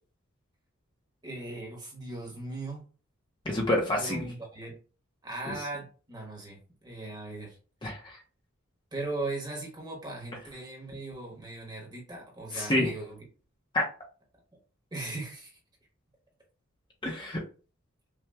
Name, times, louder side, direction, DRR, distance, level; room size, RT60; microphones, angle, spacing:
voice 1, 1.2-2.9 4.0-4.8 5.2-7.6 8.9-13.2 14.9-15.6, right 2 dB, 20° right, 0 dB, 1.1 m, -38 dB
voice 2, 3.5-4.3 5.5-5.6 7.8-8.2 12.5-12.9 13.7-13.8 17.0-17.4, left 1 dB, 25° left, -1 dB, 0.7 m, -28 dB
5.6 x 2.2 x 2.3 m, 0.36 s
head